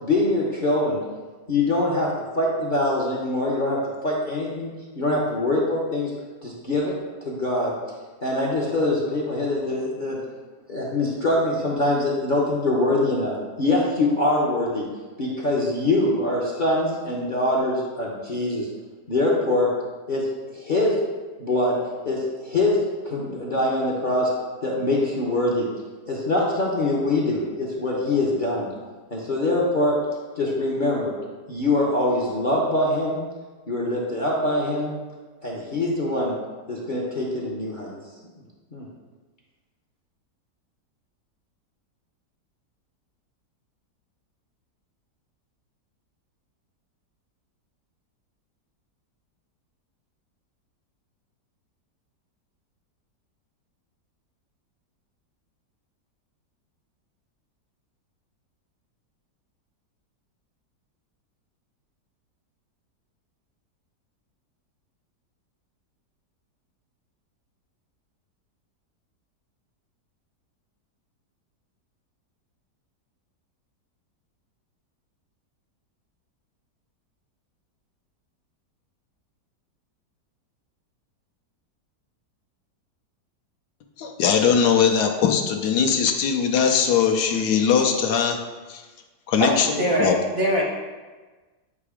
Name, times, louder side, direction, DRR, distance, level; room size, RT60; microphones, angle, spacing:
voice 1, 0.0-1.0 1.5-2.1 2.4-4.7 5.0-6.1 6.4-6.9 7.2-10.2 10.7-14.8 15.2-18.7 19.1-19.7 20.1-20.9 21.4-21.8 22.0-24.3 24.6-25.7 26.1-28.7 29.1-30.0 30.3-31.1 31.5-33.2 33.7-34.9 35.4-36.4 36.7-38.0 38.7-38.8, left 2 dB, 45° left, -4 dB, 0.7 m, -23 dB
voice 2, 84.0-88.4 88.7-88.8 89.3-89.7 90.0-90.1, left 7 dB, 70° left, 3 dB, 1.1 m, -20 dB
voice 3, 89.4-90.6, equal, 50° right, -3 dB, 0.7 m, -23 dB
8.4 x 2.9 x 4.8 m, 1.3 s
omnidirectional pair, 1.9 m